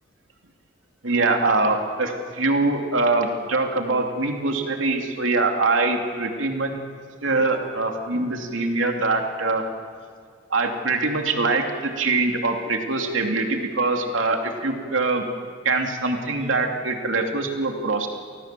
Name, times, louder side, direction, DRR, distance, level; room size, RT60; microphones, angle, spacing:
voice 1, 1.0-6.7 7.2-9.6 10.5-15.3 15.6-18.1, right 3 dB, 70° right, 3 dB, 2.9 m, -23 dB
29.5 x 19.0 x 7.7 m, 2.1 s
head